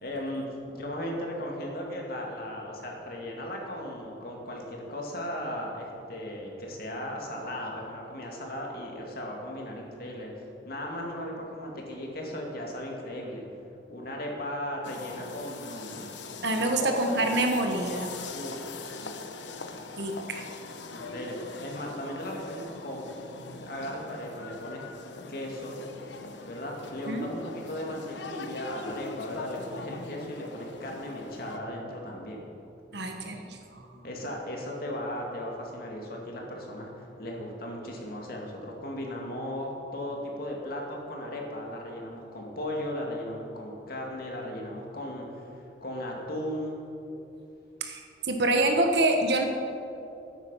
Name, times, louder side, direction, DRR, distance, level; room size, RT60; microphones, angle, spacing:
voice 1, 0.0-0.5 0.7-13.5 13.9-16.0 16.6-17.0 18.3-18.9 20.9-23.0 23.5-24.8 25.3-25.8 26.4-32.5 34.0-46.8, left 1 dB, 55° left, -1 dB, 2.4 m, -36 dB
sound 1, 14.8-31.6, left 3 dB, 75° left, 1.0 m, -42 dB
voice 2, 16.4-18.1 20.0-20.5 27.1-27.2 32.9-34.0 47.8-49.4, right 2 dB, 65° right, 3 dB, 1.4 m, -27 dB
13.0 x 9.3 x 5.8 m, 2.8 s
head